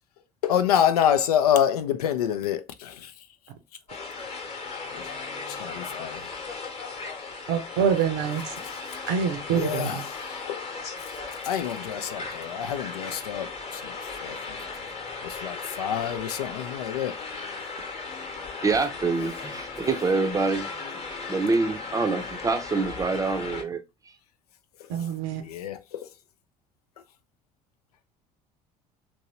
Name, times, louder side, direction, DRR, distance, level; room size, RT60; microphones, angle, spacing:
voice 1, 0.4-3.1 4.9-5.0 5.5-6.3 8.6-8.8 9.5-10.7 11.4-14.6 15.2-17.1 24.8-24.9 25.4-26.1, left 9 dB, 75° left, 0.4 m, -27 dB
sound 1, 3.9-23.6, left 4 dB, 30° left, 0.9 m, -37 dB
voice 2, 7.5-8.4 9.1-9.9 24.9-25.4, right 7 dB, 55° right, 0.7 m, -25 dB
voice 3, 18.6-20.7 21.3-23.8, right 3 dB, 15° right, 0.6 m, -25 dB
2.9 x 2.7 x 2.9 m
figure-of-eight pair, 60°, 20 cm